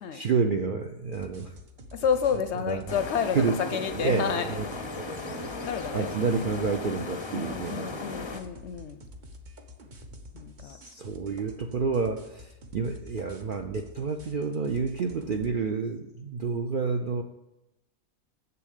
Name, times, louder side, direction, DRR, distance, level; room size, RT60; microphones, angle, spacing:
voice 1, 0.1-1.5 2.7-2.9 3.3-3.6 3.9-4.6 4.9-5.5 5.9-8.0 10.6-17.2, right 5 dB, 60° right, 5 dB, 0.5 m, -29 dB
sound 1, 1.1-15.5, left 1 dB, 40° right, 0.9 m, -48 dB
voice 2, 1.9-3.4 3.7-4.5 5.6-6.1 7.3-9.0 10.3-10.8, left 7 dB, 65° left, 10 dB, 0.7 m, -30 dB
sound 2, 2.9-8.4, left 3 dB, 30° left, 0.5 m, -37 dB
7.5 x 6.9 x 6.5 m, 0.94 s
omnidirectional pair, 1.5 m